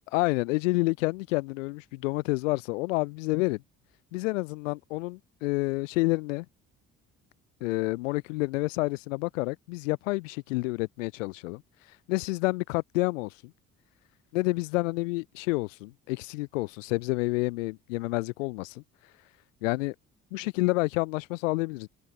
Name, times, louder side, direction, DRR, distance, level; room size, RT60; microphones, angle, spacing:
voice 1, 0.0-3.6 4.1-6.5 7.6-11.6 12.1-13.3 14.3-18.8 19.6-19.9 20.3-21.9, left 24 dB, 70° left, 0.5 m, -29 dB
open air
figure-of-eight pair, 45°, 40 cm